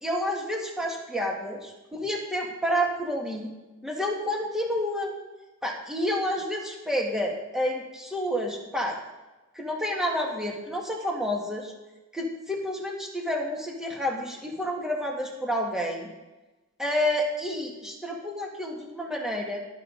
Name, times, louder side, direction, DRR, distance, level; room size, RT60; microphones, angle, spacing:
voice 1, 0.0-1.6 1.9-3.5 3.8-5.1 5.6-9.0 9.5-11.7 12.1-16.1 16.8-19.6, equal, 5° right, -1 dB, 1.8 m, -29 dB
18.0 x 6.7 x 4.0 m, 1.1 s
head